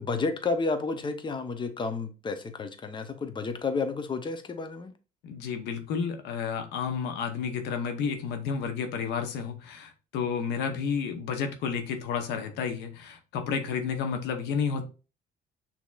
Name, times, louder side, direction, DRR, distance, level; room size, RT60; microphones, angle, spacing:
voice 1, 0.0-4.9, left 4 dB, 30° left, 0.7 m, -31 dB
voice 2, 5.2-14.9, left 6 dB, 85° left, 0.9 m, -31 dB
6.5 x 2.8 x 2.3 m
cardioid pair, 110°, 17 cm